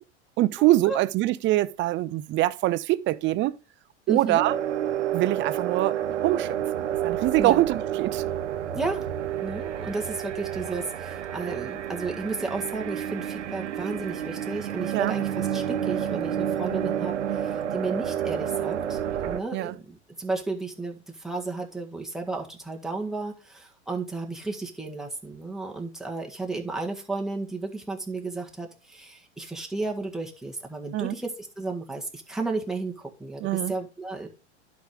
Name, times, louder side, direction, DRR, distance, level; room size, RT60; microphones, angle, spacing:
voice 1, 0.4-3.6 4.1-4.6 5.1-8.2 14.9-15.1 19.5-19.7 30.9-31.2 33.4-33.7, right 16 dB, 35° right, 0.6 m, -24 dB
voice 2, 4.1-4.4 7.4-7.6 8.7-9.0 9.4-34.3, right 3 dB, ahead, 1.7 m, -33 dB
sound 1, 4.4-19.4, right 10 dB, 90° right, 0.9 m, -30 dB
11.5 x 4.8 x 3.7 m
hypercardioid pair, 105°, 35 cm